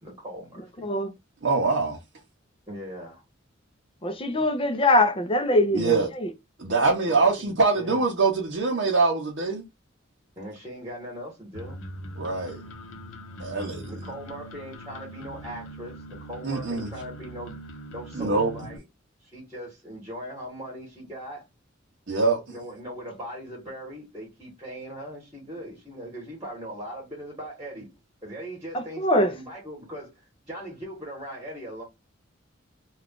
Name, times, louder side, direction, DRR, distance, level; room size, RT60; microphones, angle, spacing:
voice 1, 0.0-0.9 2.7-3.2 7.0-7.5 7.7-8.0 10.4-11.8 13.9-17.6 17.9-18.8 19.2-21.4 22.5-27.9 28.2-31.8, equal, 15° right, 1.2 m, -39 dB
voice 2, 0.8-1.1 4.0-6.3 28.7-29.3, left 1 dB, 25° left, 0.5 m, -23 dB
voice 3, 1.4-2.0 5.7-6.1 6.6-9.7 12.2-12.6 13.4-13.9 16.4-16.9 18.1-18.5 22.1-22.4, right 3 dB, 60° right, 0.7 m, -24 dB
sound 1, 11.5-18.8, right 1 dB, 75° left, 0.7 m, -41 dB
2.4 x 2.3 x 3.5 m
head